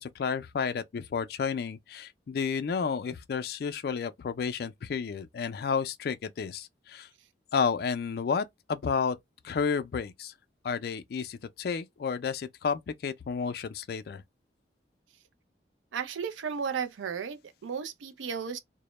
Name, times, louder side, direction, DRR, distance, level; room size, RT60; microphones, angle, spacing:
voice 1, 0.0-7.1 7.5-9.2 9.4-10.3 10.6-14.2, left 6 dB, 55° left, 0.3 m, -31 dB
voice 2, 15.9-18.6, right 6 dB, 90° right, 0.4 m, -34 dB
2.1 x 2.0 x 3.0 m
head